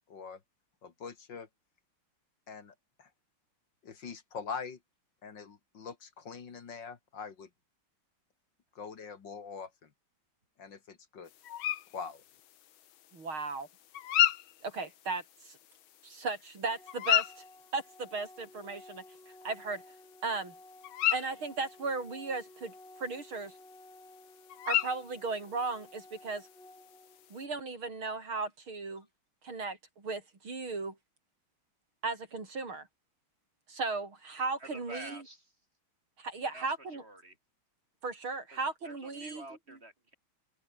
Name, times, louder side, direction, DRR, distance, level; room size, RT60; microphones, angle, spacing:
voice 1, 0.1-0.4 0.8-1.5 2.5-3.1 3.8-4.8 5.2-7.5 8.8-9.9 10.6-11.3 11.9-12.2, left 5 dB, 60° left, 2.7 m, -43 dB
sound 1, 11.3-27.4, left 11 dB, 80° left, 1.9 m, -36 dB
voice 2, 13.1-13.7 14.6-15.6 16.0-17.4 17.7-19.0 19.4-19.8 20.2-20.5 21.1-23.5 24.7-26.5 27.3-29.1 29.4-31.0 32.0-32.9 33.7-35.2 36.2-37.0 38.0-39.4, right 3 dB, 85° right, 5.6 m, -36 dB
Organ, 16.7-27.7, left 1 dB, 25° left, 7.3 m, -55 dB
voice 3, 34.6-35.6 36.5-37.4 38.5-40.1, right 1 dB, 30° right, 7.1 m, -49 dB
omnidirectional pair, 2.2 m